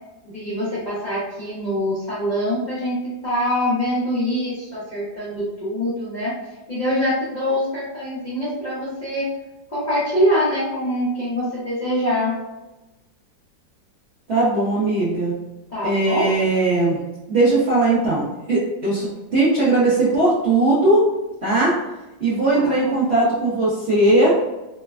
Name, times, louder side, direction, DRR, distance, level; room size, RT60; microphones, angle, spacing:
voice 1, 0.2-6.3 6.7-9.3 9.7-12.3 15.7-16.3 22.5-22.9, equal, 50° left, -11 dB, 0.5 m, -24 dB
voice 2, 14.3-15.3 15.8-17.0 17.3-21.0 21.4-21.7 22.2-24.3, right 2 dB, 55° right, -10 dB, 0.7 m, -19 dB
3.2 x 2.1 x 2.3 m, 1.0 s
omnidirectional pair, 2.0 m